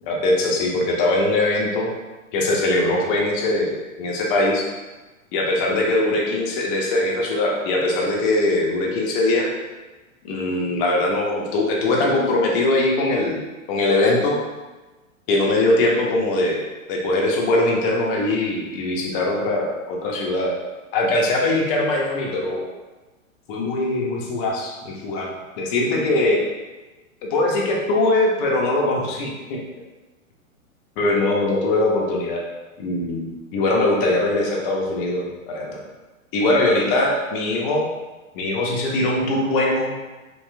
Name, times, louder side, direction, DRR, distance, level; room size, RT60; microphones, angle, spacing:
voice 1, 0.0-1.9 2.3-4.7 5.3-9.5 10.2-13.4 13.7-14.4 15.3-16.6 16.9-20.6 20.9-22.6 23.5-25.3 25.6-26.4 27.3-29.6 31.0-32.4 32.8-35.8 36.3-37.9 38.3-40.0, left 2 dB, 40° left, -1 dB, 0.7 m, -21 dB
3.0 x 2.8 x 2.2 m, 1.2 s
hypercardioid pair, 110°, 41 cm